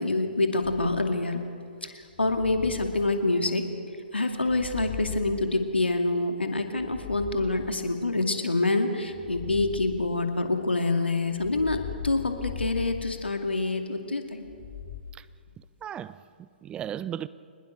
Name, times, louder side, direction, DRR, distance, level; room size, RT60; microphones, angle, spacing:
voice 1, 0.0-1.4 1.8-3.6 4.1-14.4, left 2 dB, 85° left, 2.4 m, -26 dB
sound 1, 0.6-1.3 2.1-3.8 4.4-6.2 6.7-8.3 9.1-10.7 11.3-13.8 14.4-15.0, left 10 dB, 25° left, 2.7 m, -40 dB
voice 2, 15.8-17.3, right 10 dB, 15° right, 0.4 m, -36 dB
25.5 x 20.0 x 6.8 m
figure-of-eight pair, 125°, 6 cm